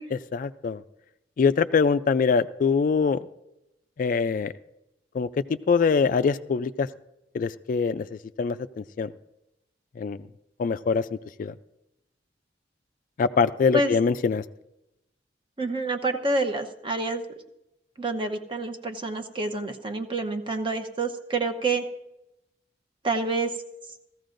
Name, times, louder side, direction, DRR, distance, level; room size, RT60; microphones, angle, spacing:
voice 1, 0.3-0.8 1.4-3.3 4.0-4.5 5.1-5.3 5.7-6.9 7.3-9.1 10.0-10.2 10.6-11.1 11.4-11.5 13.2-14.4, left 5 dB, 50° left, 13 dB, 0.3 m, -23 dB
voice 2, 15.6-17.2 18.0-21.8 23.0-23.5, right 2 dB, 30° right, 6 dB, 0.8 m, -27 dB
17.0 x 14.5 x 2.5 m, 0.88 s
head